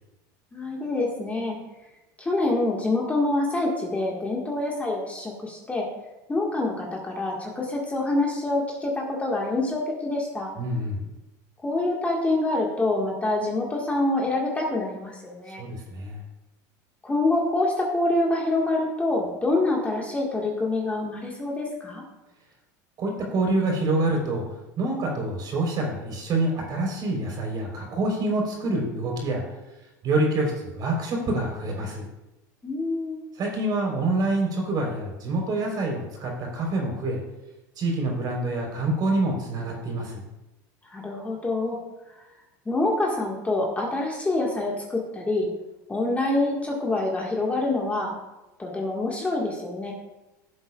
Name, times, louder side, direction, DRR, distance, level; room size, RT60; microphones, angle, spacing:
voice 1, 0.5-1.6 2.2-5.9 6.3-10.5 11.6-15.6 17.0-22.0 32.6-33.2 40.8-41.8 42.6-45.5 45.9-48.2 48.6-49.9, left 2 dB, 15° left, -2 dB, 1.6 m, -26 dB
voice 2, 10.6-11.1 15.6-16.2 23.0-24.4 24.8-29.4 30.0-32.0 33.3-37.2 37.8-40.2, right 2 dB, 45° right, -1 dB, 3.8 m, -26 dB
16.5 x 7.6 x 2.4 m, 1.0 s
supercardioid pair, 110°, 10 cm